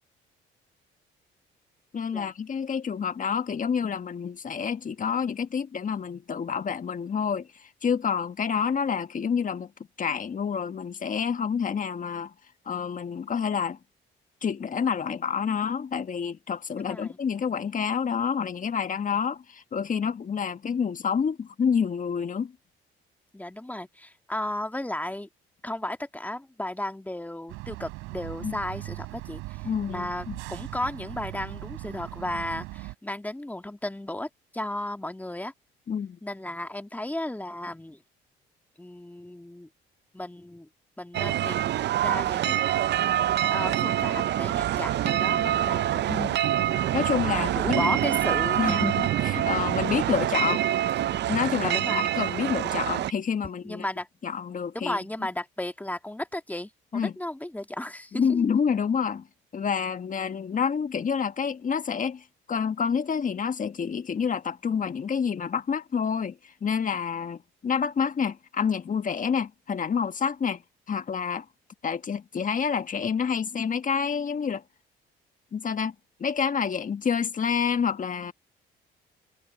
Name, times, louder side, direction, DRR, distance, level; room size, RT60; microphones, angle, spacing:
voice 1, 1.9-9.7 10.0-12.3 12.6-13.8 14.4-22.5 28.4-28.6 29.6-30.4 35.9-36.2 46.1-46.4 46.9-47.8 48.6-50.6 51.3-53.8 54.2-55.0 56.9-57.1 58.1-59.3 59.5-70.6 70.9-71.4 71.8-74.6 75.5-75.9 76.2-78.3, left 6 dB, 40° left, 1.6 m, -28 dB
voice 2, 16.8-17.2 23.3-25.3 25.6-35.5 36.2-38.0 38.8-39.7 40.1-40.7 41.0-42.7 43.5-46.3 47.3-48.9 51.6-52.1 53.6-54.1 54.7-58.2, left 1 dB, 10° left, 1.9 m, -34 dB
sound 1, 27.5-32.9, right 22 dB, 90° right, 3.7 m, -39 dB
sound 2, 41.1-53.1, right 12 dB, 60° right, 0.6 m, -26 dB
supercardioid pair, 70°, 20 cm